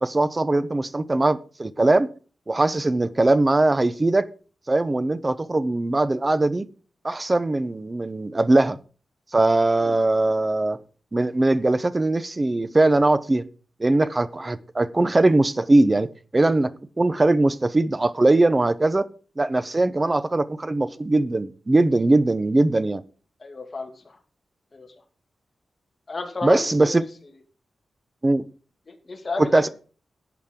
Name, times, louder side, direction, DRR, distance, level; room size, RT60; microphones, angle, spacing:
voice 1, 0.0-2.1 2.5-4.3 4.7-6.7 7.0-8.8 9.3-10.8 11.1-13.5 13.8-19.1 19.4-23.0 26.4-27.0 28.2-28.4 29.4-29.7, right 2 dB, 20° right, 0.6 m, -20 dB
voice 2, 23.4-23.9 24.7-24.9 26.1-27.0 28.9-29.7, left 3 dB, 35° left, 2.1 m, -32 dB
11.5 x 8.5 x 3.7 m
wide cardioid pair, 125°, 0 cm